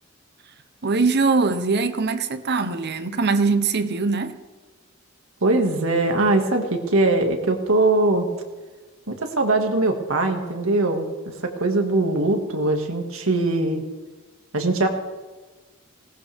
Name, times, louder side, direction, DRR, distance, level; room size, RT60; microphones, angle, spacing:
voice 1, 0.8-4.4, right 4 dB, 55° right, 1.0 m, -22 dB
voice 2, 5.4-8.3 9.1-11.1 11.4-13.8 14.5-14.9, right 2 dB, 80° right, 2.2 m, -21 dB
20.5 x 18.5 x 3.6 m
head